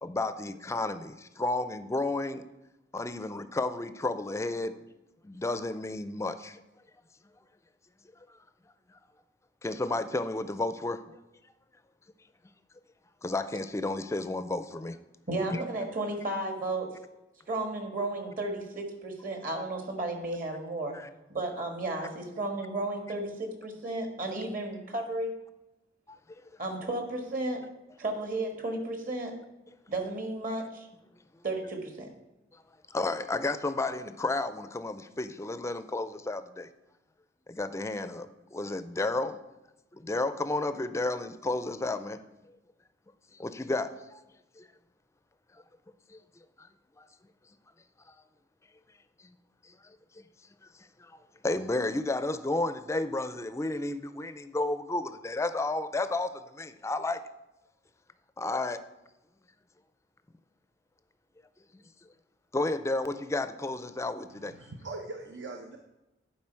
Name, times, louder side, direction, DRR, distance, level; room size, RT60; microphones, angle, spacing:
voice 1, 0.0-1.1 1.4-2.4 2.9-4.7 5.3-6.5 9.6-11.0 13.2-14.9 15.5-15.6 20.9-21.1 32.9-36.7 37.5-38.3 38.5-39.4 40.1-42.2 43.4-43.9 51.4-56.3 56.6-57.2 58.4-58.8 62.5-64.5, left 2 dB, 15° left, 12 dB, 0.4 m, -31 dB
voice 2, 15.3-17.0 17.5-21.0 21.3-25.3 26.6-27.6 28.0-29.4 29.9-30.9 31.4-32.1, right 2 dB, 50° right, 4 dB, 1.5 m, -33 dB
voice 3, 64.3-65.8, right 3 dB, 80° right, 3 dB, 0.8 m, -41 dB
10.5 x 4.7 x 4.4 m, 0.96 s
head